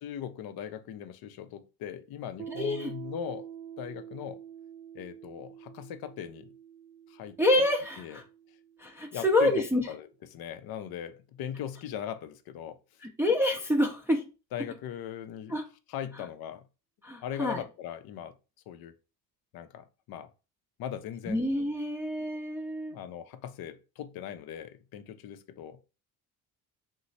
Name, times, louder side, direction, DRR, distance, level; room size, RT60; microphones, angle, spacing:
voice 1, 0.0-3.5 3.8-4.4 4.9-6.5 7.1-7.6 8.0-8.2 9.1-12.8 14.5-15.6 15.9-16.6 17.2-18.4 18.7-18.9 19.5-20.3 20.8-21.4 22.9-25.8, left 9 dB, 50° left, 0.5 m, -39 dB
Piano, 2.4-9.6, right 9 dB, 65° right, 0.6 m, -47 dB
voice 2, 2.5-2.9 7.4-8.2 8.8-9.8 13.2-14.2 15.5-15.6 17.0-17.6 21.3-22.9, left 1 dB, 5° right, 0.6 m, -27 dB
3.0 x 2.0 x 3.9 m
hypercardioid pair, 60°, 48 cm